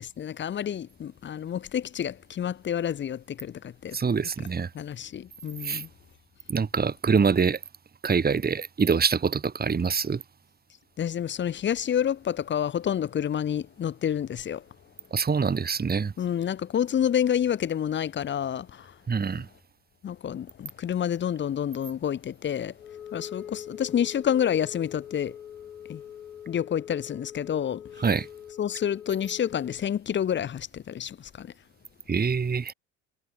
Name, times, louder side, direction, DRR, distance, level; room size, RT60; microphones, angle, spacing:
voice 1, 0.0-4.0 4.7-5.9 11.0-14.6 16.2-18.9 20.0-22.7 23.1-25.4 25.9-26.0 26.5-28.0 28.6-31.5, left 9 dB, 25° left, 0.7 m, -29 dB
voice 2, 3.9-4.7 5.6-5.8 6.5-7.6 8.0-10.2 15.1-16.1 19.1-19.5 28.0-28.3 32.1-32.7, right 5 dB, 20° right, 1.7 m, -25 dB
Wind instrument woodwind instrument, 22.8-29.9, left 9 dB, 85° left, 2.6 m, -43 dB
figure-of-eight pair, 60°, 42 cm